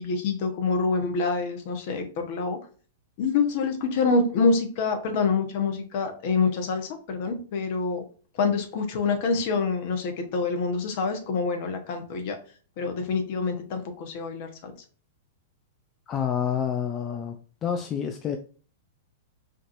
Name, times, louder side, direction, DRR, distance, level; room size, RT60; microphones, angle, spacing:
voice 1, 0.0-2.6 3.2-8.0 8.3-12.4 12.8-14.7, left 4 dB, 55° left, 5 dB, 1.1 m, -26 dB
voice 2, 16.1-17.4 17.6-18.4, left 8 dB, 30° left, 5 dB, 0.5 m, -28 dB
5.0 x 2.9 x 2.6 m, 0.40 s
hypercardioid pair, 115°, 0 cm